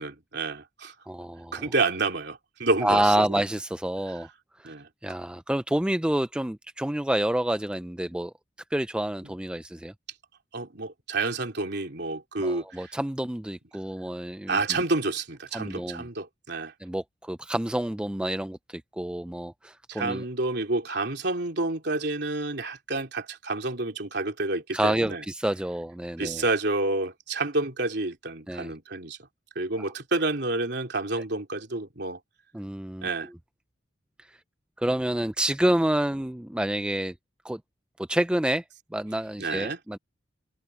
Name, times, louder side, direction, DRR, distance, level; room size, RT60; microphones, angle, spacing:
voice 1, 0.0-0.9 1.5-3.1 4.6-4.9 10.5-12.9 14.5-16.7 19.9-25.2 26.2-29.2 29.6-32.2 33.0-33.3 39.4-39.8, right 2 dB, 60° right, 3.4 m, -29 dB
voice 2, 1.1-1.7 2.8-4.3 4.6-4.7 5.0-8.3 8.7-9.9 12.4-14.8 15.5-16.1 16.8-20.2 24.7-26.4 28.5-28.7 32.5-33.1 34.8-37.1 37.4-37.6 38.1-38.6 38.9-40.0, right 1 dB, 5° right, 0.3 m, -28 dB
head